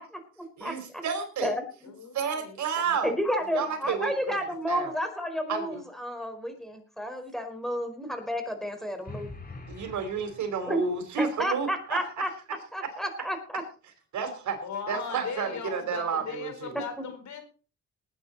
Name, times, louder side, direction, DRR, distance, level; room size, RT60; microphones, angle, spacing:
voice 1, 0.6-1.5 2.1-3.1 3.5-4.4 4.7-4.9 5.5-5.8 9.7-12.0 14.1-14.6 14.9-16.7, right 6 dB, 70° right, 6 dB, 4.5 m, -31 dB
voice 2, 1.8-2.6 2.8-2.9 3.4-4.0 14.6-17.4, left 6 dB, 70° left, 6 dB, 4.4 m, -39 dB
voice 3, 3.0-9.3 10.7-10.8 11.2-12.3 12.7-13.6, equal, ahead, 5 dB, 4.6 m, -31 dB
sound 1, 9.1-11.1, left 3 dB, 30° left, 3.0 m, -44 dB
19.5 x 9.8 x 4.2 m, 0.36 s
cardioid pair, 90°, 30 cm